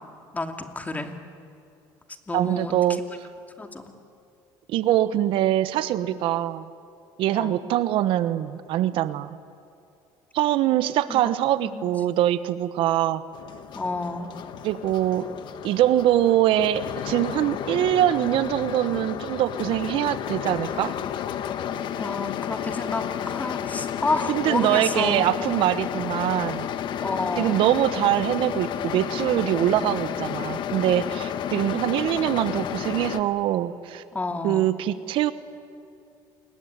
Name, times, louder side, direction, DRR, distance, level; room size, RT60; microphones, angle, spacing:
voice 1, 0.3-1.1 2.3-2.8 3.6-3.8 7.3-7.6 11.1-11.2 11.6-11.9 13.7-14.3 22.0-25.3 26.0-26.3 27.0-27.6 31.5-31.7 34.1-34.7, left 3 dB, 15° left, 6 dB, 2.6 m, -30 dB
voice 2, 2.3-3.0 4.7-6.7 7.2-9.4 10.3-13.2 14.6-15.3 15.6-21.0 24.3-26.7 27.4-34.0 34.4-35.3, right 12 dB, 65° right, 14 dB, 1.1 m, -23 dB
sound 1, 13.3-33.2, left 9 dB, 55° left, 1.4 m, -32 dB
29.0 x 21.5 x 9.6 m, 2.5 s
cardioid pair, 110°, 9 cm